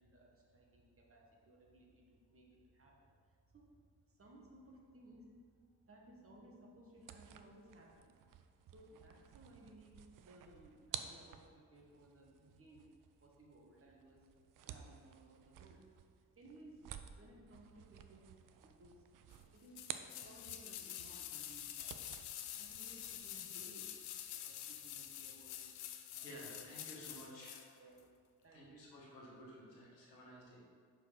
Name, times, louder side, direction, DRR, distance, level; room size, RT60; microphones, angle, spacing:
voice 1, 0.0-3.7 4.1-5.3 5.9-8.1 8.7-12.9 13.2-14.3 14.6-15.9 16.2-16.8 17.1-18.3 18.6-19.0 19.5-23.9 24.3-25.7 26.1-26.7 27.0-28.0 28.4-28.9, right 1 dB, 25° right, -2 dB, 1.4 m, -61 dB
sound 1, 7.0-20.7 21.0-23.4, right 9 dB, 45° right, 0.5 m, -53 dB
sound 2, 19.7-27.7 28.0-28.1, left 11 dB, 70° left, 0.6 m, -47 dB
voice 2, 25.8-27.9 28.5-30.6, equal, 90° left, -4 dB, 1.1 m, -55 dB
5.3 x 4.6 x 5.1 m, 2.1 s
figure-of-eight pair, 40°, 48 cm